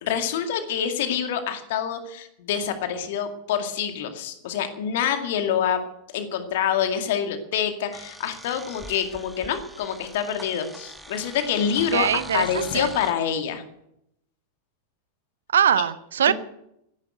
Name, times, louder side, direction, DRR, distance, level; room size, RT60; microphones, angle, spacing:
voice 1, 0.0-5.8 6.1-13.6 16.3-16.4, left 8 dB, 55° left, 7 dB, 2.2 m, -26 dB
sound 1, 7.9-13.1, right 1 dB, 5° right, 1.4 m, -42 dB
voice 2, 11.9-12.9 15.5-16.3, right 8 dB, 65° right, 16 dB, 0.8 m, -22 dB
15.0 x 11.0 x 8.0 m, 0.78 s
figure-of-eight pair, 90°, 0 cm